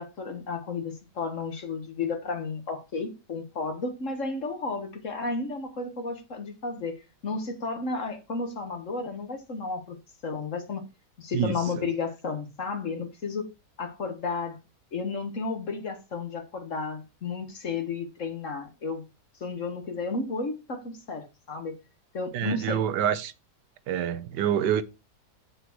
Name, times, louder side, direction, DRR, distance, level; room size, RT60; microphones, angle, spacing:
voice 1, 0.0-10.0 10.2-10.9 11.2-13.5 13.8-14.6 14.9-19.0 19.4-21.8 22.1-22.9, left 4 dB, 50° left, 1.8 m, -33 dB
voice 2, 22.3-23.3 23.9-24.8, right 9 dB, 85° right, 1.3 m, -26 dB
7.8 x 6.1 x 4.6 m
omnidirectional pair, 1.8 m